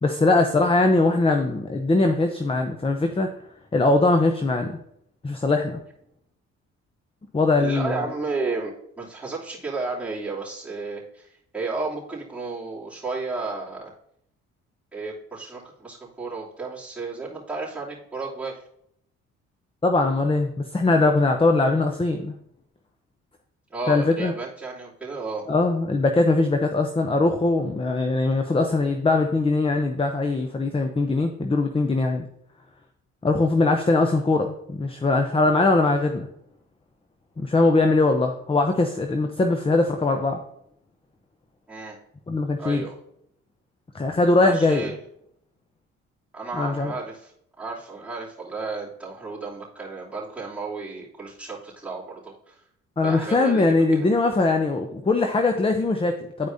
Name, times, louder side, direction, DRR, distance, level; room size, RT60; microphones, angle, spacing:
voice 1, 0.0-3.3 3.7-4.8 5.2-5.8 7.3-7.9 19.8-22.3 23.9-24.3 25.5-32.3 33.2-36.3 37.4-40.4 42.3-42.8 43.9-44.8 46.5-46.9 53.0-56.5, left 3 dB, 15° left, 5 dB, 0.6 m, -21 dB
voice 2, 7.6-13.9 14.9-18.6 23.7-25.5 41.7-42.0 42.6-42.9 44.4-45.0 46.3-47.3 47.6-52.6 53.0-54.0, right 3 dB, 5° right, -8 dB, 2.9 m, -33 dB
10.5 x 4.6 x 2.7 m, 0.71 s
supercardioid pair, 65°, 32 cm